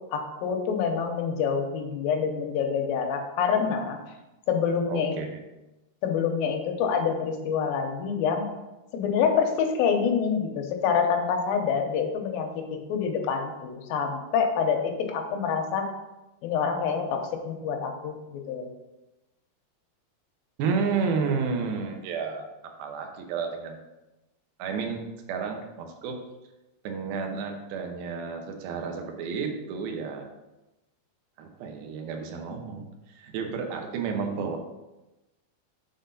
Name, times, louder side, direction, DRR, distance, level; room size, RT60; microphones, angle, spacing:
voice 1, 0.1-4.0 4.5-5.1 6.0-8.5 8.9-15.9 16.4-18.2 18.5-18.7, left 6 dB, 80° left, 4 dB, 2.4 m, -26 dB
voice 2, 4.9-5.4 20.6-22.5 22.8-23.8 24.6-25.0 25.3-26.2 26.8-30.3 31.4-34.6, right 5 dB, 75° right, 3 dB, 2.7 m, -31 dB
6.7 x 4.1 x 5.3 m, 1.0 s
omnidirectional pair, 4.4 m